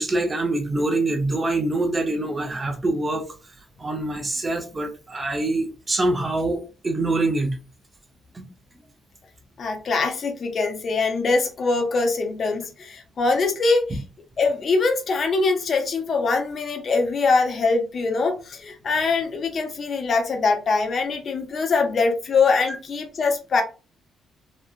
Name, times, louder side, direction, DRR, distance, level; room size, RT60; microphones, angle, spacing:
voice 1, 0.0-3.3 3.8-7.6 8.3-8.5, right 2 dB, 25° right, 0.8 m, -25 dB
voice 2, 9.6-14.0 14.4-23.6, left 4 dB, 50° left, 0.8 m, -23 dB
3.1 x 2.4 x 2.4 m
cardioid pair, 90°, 0 cm